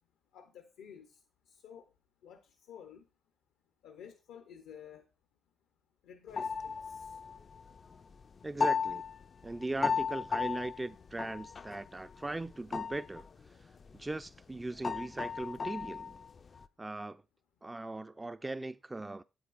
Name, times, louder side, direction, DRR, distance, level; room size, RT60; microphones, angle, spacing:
voice 1, 0.3-1.9 2.2-3.1 3.8-5.1 6.0-7.2, left 8 dB, 85° left, 0.6 m, -52 dB
sound 1, 6.4-8.0 8.4-12.4 12.7-13.4 13.7-14.0 14.2-14.3 14.6-16.6, left 5 dB, 50° left, 0.4 m, -35 dB
voice 2, 8.4-9.0 9.4-13.3 13.9-16.2 16.8-17.2 17.6-19.2, right 2 dB, 20° right, 0.4 m, -39 dB
9.5 x 8.2 x 2.4 m
supercardioid pair, 55°, 0 cm